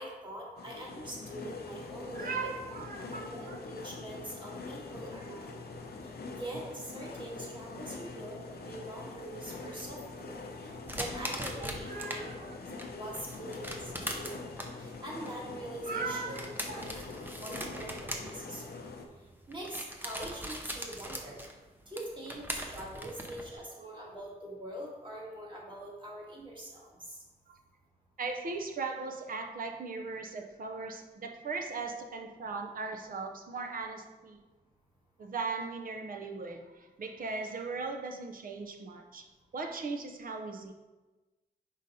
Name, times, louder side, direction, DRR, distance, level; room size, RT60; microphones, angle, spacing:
voice 1, 0.0-2.5 3.1-5.6 6.0-12.5 12.9-14.5 14.8-18.6 19.5-21.4 21.9-27.2, right 1 dB, 25° right, -4 dB, 1.7 m, -43 dB
sound 1, 0.6-19.1, left 3 dB, 65° left, 0.7 m, -44 dB
voice 2, 2.1-3.6 11.6-12.6 15.9-17.0 23.8-24.0 27.5-27.6 28.2-34.4 35.2-39.3 39.5-40.7, right 4 dB, 55° right, 4 dB, 0.6 m, -38 dB
sound 2, 8.9-12.2 12.6-23.6, right 1 dB, 10° right, 0.6 m, -41 dB
5.3 x 5.0 x 4.2 m, 1.2 s
wide cardioid pair, 145°, 18 cm